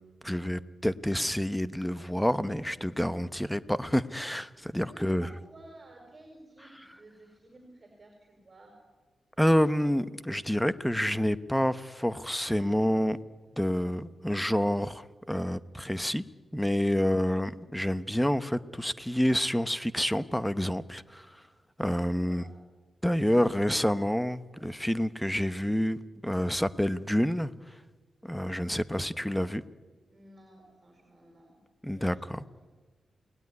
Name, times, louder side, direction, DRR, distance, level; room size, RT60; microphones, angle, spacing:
voice 1, 0.2-5.3 9.4-13.2 13.6-16.2 16.5-21.3 21.8-22.4 23.0-27.5 28.2-29.6 31.8-32.4, equal, 5° left, 14 dB, 1.0 m, -28 dB
voice 2, 4.8-8.7 22.1-22.6 30.1-31.6 31.9-32.7, right 1 dB, 30° right, 1 dB, 5.6 m, -54 dB
29.5 x 19.5 x 9.7 m, 1.3 s
wide cardioid pair, 110°, 0 cm